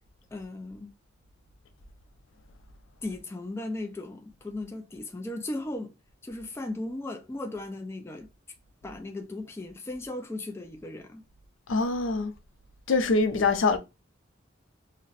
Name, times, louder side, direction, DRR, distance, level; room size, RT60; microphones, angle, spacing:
voice 1, 0.3-0.9 3.0-5.9 6.2-8.3 8.8-11.2, left 2 dB, 15° left, 0.3 m, -36 dB
voice 2, 11.7-12.3 12.9-13.8, left 3 dB, 85° left, 0.5 m, -24 dB
2.4 x 2.1 x 3.9 m
head